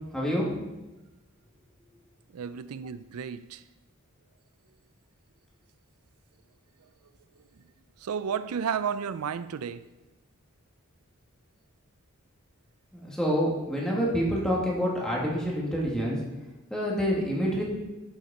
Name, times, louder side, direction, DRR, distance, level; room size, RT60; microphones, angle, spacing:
voice 1, 0.1-0.5 12.9-16.2 16.7-17.6, equal, 5° left, -4 dB, 2.4 m, -27 dB
voice 2, 2.3-3.6 8.0-9.9, right 7 dB, 85° right, 14 dB, 0.4 m, -32 dB
12.0 x 6.6 x 4.3 m, 1.1 s
head